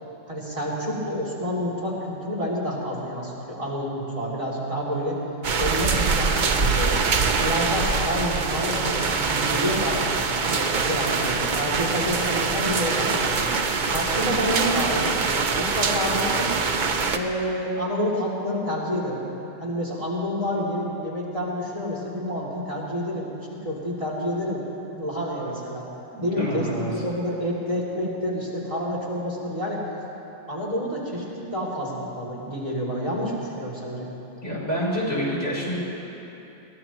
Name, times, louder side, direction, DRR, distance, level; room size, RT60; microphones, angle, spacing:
voice 1, 0.3-5.2 5.6-7.0 7.4-10.1 10.4-13.5 13.9-15.1 15.5-16.5 17.1-19.2 19.6-24.6 25.0-25.9 26.2-29.8 30.5-34.1, equal, 30° right, -6 dB, 2.9 m, -28 dB
sound 1, 5.4-17.2, right 4 dB, 50° right, 0.8 m, -24 dB
voice 2, 26.1-26.9 34.4-35.7, equal, 80° left, -7 dB, 4.6 m, -27 dB
22.0 x 17.0 x 3.0 m, 3.0 s
omnidirectional pair, 1.2 m